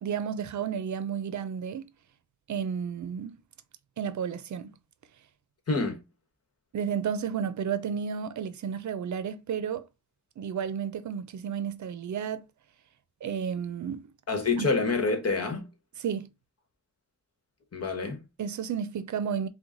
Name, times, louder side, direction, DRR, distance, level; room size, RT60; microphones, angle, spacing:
voice 1, 0.0-1.9 2.5-3.4 4.0-4.8 6.7-9.9 10.4-12.5 13.2-14.1 14.6-14.7 16.0-16.3 18.4-19.5, right 7 dB, 75° right, 0.5 m, -32 dB
voice 2, 5.7-6.0 14.3-15.7 17.7-18.2, left 3 dB, 55° left, 1.2 m, -27 dB
4.6 x 2.2 x 3.8 m
wide cardioid pair, 130°, 29 cm